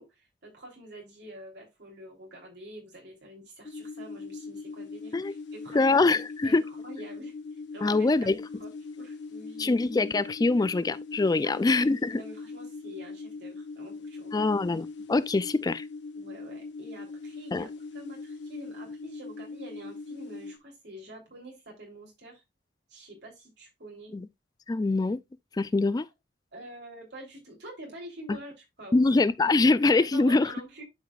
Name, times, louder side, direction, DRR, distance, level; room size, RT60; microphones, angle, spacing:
voice 1, 0.0-6.0 6.4-8.1 8.6-9.9 11.4-14.5 16.1-22.4 22.9-24.2 26.5-29.1 30.0-30.8, right 1 dB, 70° right, 3.3 m, -47 dB
sound 1, 3.6-20.6, left 4 dB, 80° left, 1.3 m, -41 dB
voice 2, 5.7-6.6 7.8-8.3 9.6-12.2 14.3-15.8 17.5-17.7 24.1-24.3 24.7-25.2 25.6-26.1 28.9-30.5, left 3 dB, 20° left, 0.3 m, -24 dB
11.0 x 4.9 x 2.4 m
head